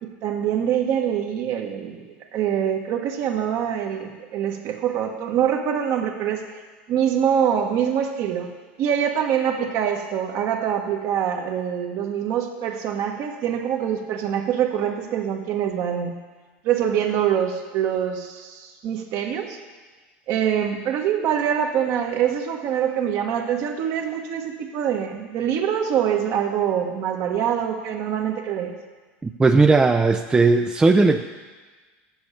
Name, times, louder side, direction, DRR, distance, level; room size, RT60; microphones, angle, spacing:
voice 1, 0.0-6.4 6.9-8.5 8.8-16.1 16.6-19.6 20.3-28.7, right 9 dB, 55° right, 3 dB, 1.4 m, -24 dB
voice 2, 29.2-31.2, right 3 dB, 15° right, 6 dB, 0.4 m, -17 dB
7.8 x 7.2 x 8.2 m, 1.4 s
supercardioid pair, 105°, 6 cm